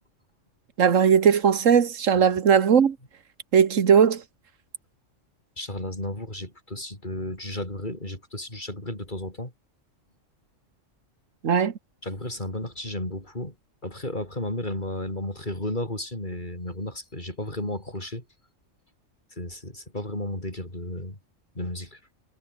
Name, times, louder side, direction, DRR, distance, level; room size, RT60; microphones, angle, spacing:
voice 1, 0.8-3.0 3.5-4.2 11.4-11.7, right 7 dB, 80° right, 1.7 m, -18 dB
voice 2, 5.6-9.5 12.0-13.5 13.8-18.2 19.4-21.2 21.5-22.0, left 1 dB, 35° left, 6.7 m, -33 dB
omnidirectional pair, 1.3 m